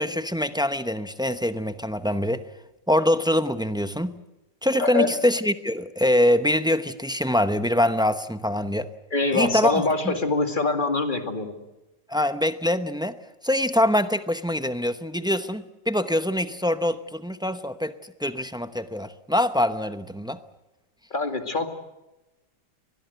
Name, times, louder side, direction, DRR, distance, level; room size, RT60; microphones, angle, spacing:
voice 1, 0.0-2.4 2.9-4.2 4.6-8.9 9.3-10.2 12.1-13.2 13.4-20.4, left 1 dB, 5° right, 10 dB, 0.3 m, -24 dB
voice 2, 9.1-11.5 21.1-21.7, left 3 dB, 30° left, 6 dB, 2.4 m, -24 dB
24.5 x 21.0 x 8.0 m, 1.0 s
omnidirectional pair, 1.8 m